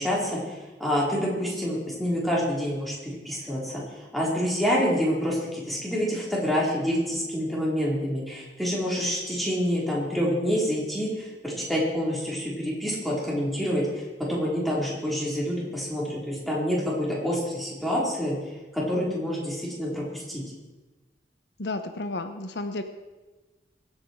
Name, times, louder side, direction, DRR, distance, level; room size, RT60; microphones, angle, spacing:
voice 1, 0.0-14.0 14.3-18.4 18.7-20.4, equal, ahead, -5 dB, 4.2 m, -27 dB
voice 2, 21.6-22.8, left 2 dB, 70° left, 8 dB, 0.9 m, -32 dB
22.5 x 8.9 x 4.7 m, 1.2 s
head